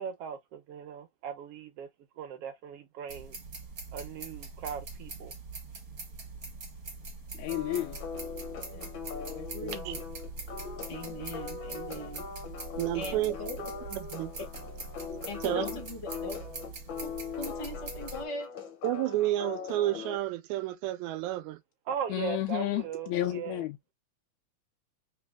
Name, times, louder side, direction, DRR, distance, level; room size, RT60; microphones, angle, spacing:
voice 1, 0.0-1.9 2.2-3.4 3.9-5.4 21.9-23.7, right 7 dB, 65° right, 1.6 m, -38 dB
sound 1, 3.1-18.2, right 3 dB, 35° right, 1.6 m, -43 dB
voice 2, 7.4-8.0 15.6-15.7 22.1-23.8, left 14 dB, 80° left, 1.9 m, -31 dB
sound 2, 7.5-20.2, left 6 dB, 50° left, 1.7 m, -41 dB
voice 3, 8.7-9.8 10.9-12.2 12.9-14.0 15.3-16.4 17.0-18.6, left 1 dB, 30° left, 0.5 m, -41 dB
voice 4, 9.6-10.0 12.8-13.4 13.9-14.3 15.4-15.7 18.8-21.6, right 15 dB, 85° right, 2.1 m, -31 dB
4.1 x 4.0 x 2.2 m
omnidirectional pair, 3.3 m